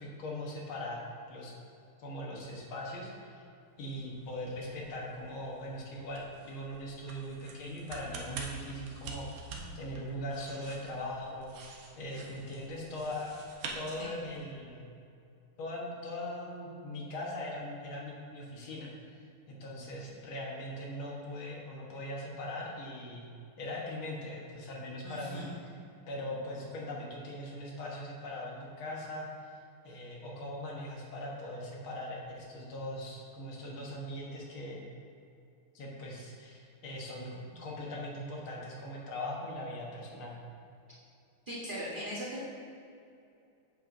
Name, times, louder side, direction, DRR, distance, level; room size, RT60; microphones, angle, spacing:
voice 1, 0.0-1.5 2.0-3.5 3.8-13.3 13.7-14.9 15.6-18.9 19.5-23.3 23.6-25.7 26.1-29.5 29.8-34.9 35.7-40.4, left 1 dB, 75° left, -3 dB, 2.0 m, -40 dB
sound 1, 3.8-14.6, right 3 dB, 70° right, 1.6 m, -47 dB
voice 2, 25.0-25.5 41.5-42.5, equal, 25° right, -8 dB, 1.3 m, -40 dB
8.7 x 7.7 x 2.6 m, 2.6 s
omnidirectional pair, 2.3 m